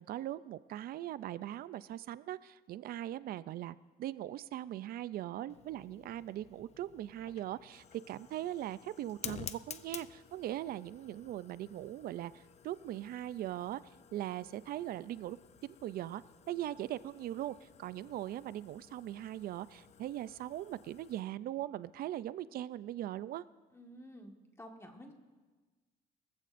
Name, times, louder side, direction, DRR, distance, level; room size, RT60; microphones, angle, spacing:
voice 1, 0.0-13.8 14.1-15.4 15.6-16.2 16.5-23.4, right 13 dB, 60° right, 16 dB, 0.4 m, -40 dB
Fire, 5.5-21.2, left 8 dB, 40° left, 0.6 m, -52 dB
voice 2, 23.7-25.1, equal, 15° left, 3 dB, 1.5 m, -51 dB
23.0 x 15.0 x 2.6 m, 1.3 s
cardioid pair, 110°, 17 cm